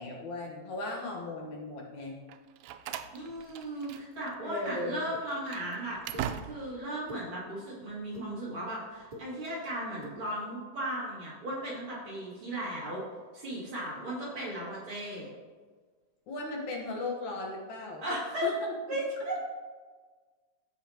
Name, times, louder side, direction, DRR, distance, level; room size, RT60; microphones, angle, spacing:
voice 1, 0.0-2.2 4.4-5.1 16.3-18.0 18.4-18.7, left 2 dB, 65° left, -1 dB, 2.4 m, -37 dB
Slam, 2.3-4.3 4.6-4.8 5.3-6.9, right 10 dB, 90° right, 2.2 m, -40 dB
voice 2, 3.1-13.0 13.3-15.3 18.0-18.5 18.9-19.4, right 1 dB, 40° right, -6 dB, 2.7 m, -36 dB
sound 1, 5.1-5.2 6.1-6.3 6.9-7.2 7.9-8.3 8.9-9.2 9.9-10.1, left 1 dB, 25° right, 1.3 m, -45 dB
15.5 x 5.7 x 2.9 m, 1.4 s
omnidirectional pair, 3.8 m